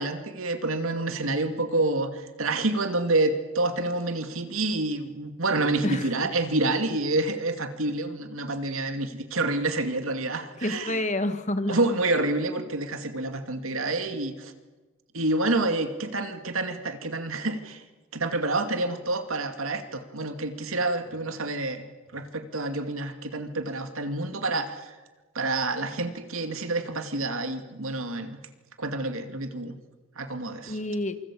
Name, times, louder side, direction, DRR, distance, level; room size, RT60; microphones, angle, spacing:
voice 1, 0.0-11.0 11.7-14.5 15.1-17.8 18.1-21.8 22.1-25.0 25.3-28.4 28.8-29.8 30.2-30.8, right 2 dB, 75° right, 7 dB, 2.5 m, -28 dB
voice 2, 10.6-12.0 30.6-31.2, left 1 dB, 35° left, 10 dB, 1.8 m, -29 dB
27.5 x 25.0 x 8.6 m, 1.2 s
head